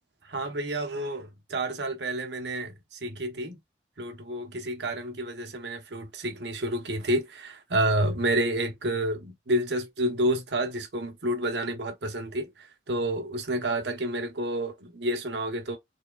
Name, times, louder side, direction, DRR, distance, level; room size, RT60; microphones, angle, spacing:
voice 1, 0.3-3.6 4.0-15.8, right 1 dB, 80° right, 1.2 m, -29 dB
4.7 x 3.7 x 2.4 m
head